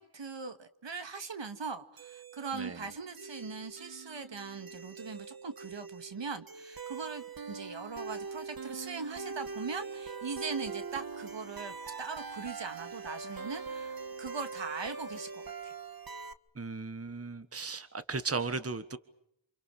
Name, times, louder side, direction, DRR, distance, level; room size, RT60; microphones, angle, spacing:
voice 1, 0.0-15.7, right 5 dB, 70° right, 9 dB, 2.2 m, -40 dB
sound 1, 2.0-16.3, right 4 dB, 50° right, 1.6 m, -43 dB
voice 2, 16.5-19.0, right 4 dB, 30° right, 12 dB, 1.5 m, -36 dB
28.5 x 28.0 x 6.6 m, 0.74 s
wide cardioid pair, 100°, 46 cm